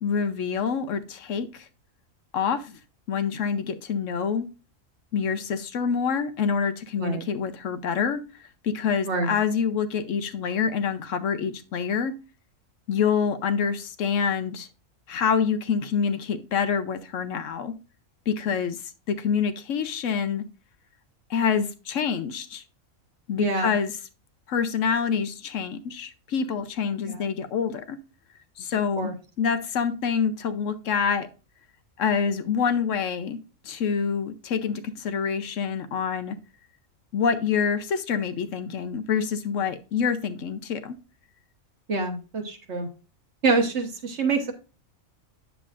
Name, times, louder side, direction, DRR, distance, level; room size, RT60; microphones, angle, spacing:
voice 1, 0.0-1.7 2.3-2.8 3.1-4.5 5.1-8.2 8.6-12.1 12.9-14.7 15.1-17.7 18.3-18.8 19.1-20.4 21.3-22.6 23.3-23.9 24.5-28.0 28.6-29.1 29.4-31.3 32.0-33.4 33.6-36.4 37.1-41.0, left 6 dB, 70° left, 1.0 m, -26 dB
voice 2, 23.4-23.7 27.0-27.2 29.0-29.1 41.9-42.9 43.4-44.5, right 3 dB, 55° right, 1.5 m, -26 dB
9.2 x 7.0 x 2.5 m
omnidirectional pair, 1.4 m